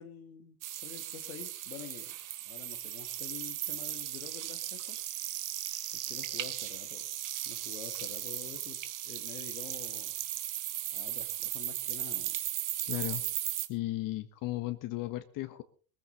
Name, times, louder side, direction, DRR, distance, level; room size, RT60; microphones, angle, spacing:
voice 1, 0.0-2.1 2.5-5.0 6.1-7.0 7.4-10.1 10.9-12.4, left 9 dB, 85° left, 5 dB, 1.9 m, -48 dB
sound 1, 0.6-13.7, right 13 dB, 50° right, 2.0 m, -37 dB
voice 2, 12.8-13.2 13.7-15.6, left 16 dB, 50° left, 9 dB, 1.4 m, -35 dB
20.0 x 15.0 x 4.0 m, 0.40 s
hypercardioid pair, 85°, 41 cm